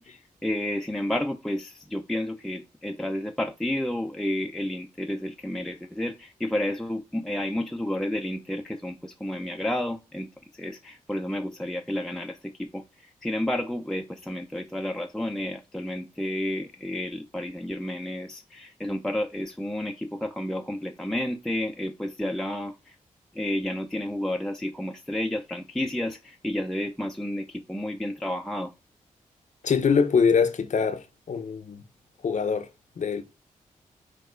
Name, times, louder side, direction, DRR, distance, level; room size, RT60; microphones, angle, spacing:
voice 1, 0.0-23.0 23.3-28.7, left 1 dB, 5° left, 0.5 m, -31 dB
voice 2, 29.6-31.8 32.2-32.7 33.0-33.2, left 6 dB, 60° left, 0.7 m, -23 dB
4.3 x 2.3 x 4.4 m
supercardioid pair, 40°, 14 cm